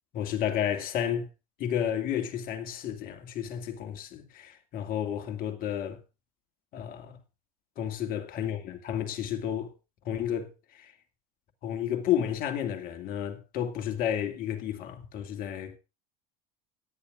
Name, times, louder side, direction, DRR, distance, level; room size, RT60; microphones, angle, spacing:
voice 1, 0.1-1.3 1.6-6.0 6.7-7.2 7.8-9.7 10.0-10.9 11.6-15.8, left 10 dB, 50° left, 2.1 m, -32 dB
17.5 x 10.5 x 2.5 m
supercardioid pair, 100°, 18 cm